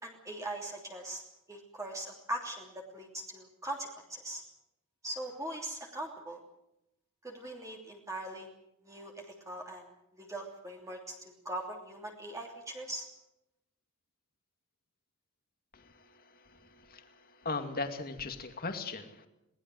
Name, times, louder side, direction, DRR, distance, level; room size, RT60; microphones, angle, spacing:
voice 1, 0.0-1.2 1.5-4.4 5.0-6.4 7.2-8.5 8.8-9.8 10.2-13.1, right 1 dB, 15° right, 0 dB, 3.1 m, -41 dB
voice 2, 15.7-19.3, left 3 dB, 40° left, 6 dB, 2.4 m, -39 dB
22.5 x 18.5 x 7.8 m, 0.84 s
head